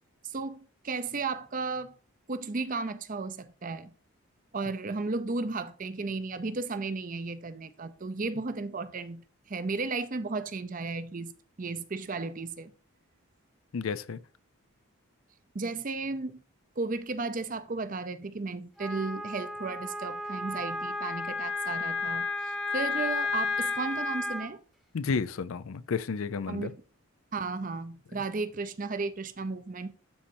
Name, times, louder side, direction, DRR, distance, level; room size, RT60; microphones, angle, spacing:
voice 1, 0.2-1.9 2.3-3.9 4.5-12.7 15.5-16.4 16.8-24.6 26.5-26.8 27.3-29.9, right 3 dB, 40° right, 0.6 m, -34 dB
voice 2, 13.7-14.2 24.9-26.7 28.1-28.2, left 5 dB, 70° left, 0.5 m, -32 dB
Wind instrument woodwind instrument, 18.8-24.5, left 3 dB, ahead, 0.9 m, -32 dB
12.5 x 4.3 x 2.7 m
head